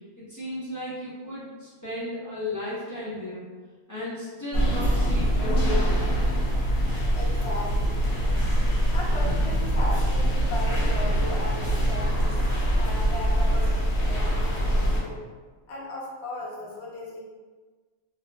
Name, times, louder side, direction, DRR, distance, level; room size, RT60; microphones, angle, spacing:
voice 1, 0.2-3.4 3.9-6.1, left 1 dB, 25° left, -11 dB, 0.4 m, -34 dB
sound 1, 4.5-15.0, equal, 90° left, 1.1 m, -24 dB
voice 2, 7.1-8.0 8.9-12.4 12.7-15.2 15.7-17.2, left 1 dB, 60° left, -4 dB, 0.8 m, -36 dB
2.7 x 2.3 x 2.2 m, 1.4 s
omnidirectional pair, 1.4 m